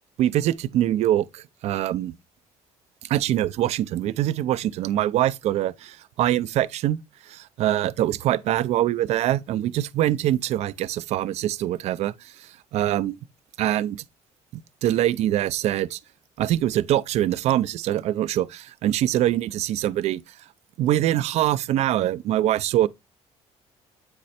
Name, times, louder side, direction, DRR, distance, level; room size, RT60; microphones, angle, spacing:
voice 1, 0.2-2.1 3.0-7.0 7.3-13.2 13.6-14.0 14.8-16.0 16.4-20.2 20.8-22.9, right 13 dB, 65° right, 0.4 m, -24 dB
8.8 x 3.1 x 4.2 m
cardioid pair, 155°, 12 cm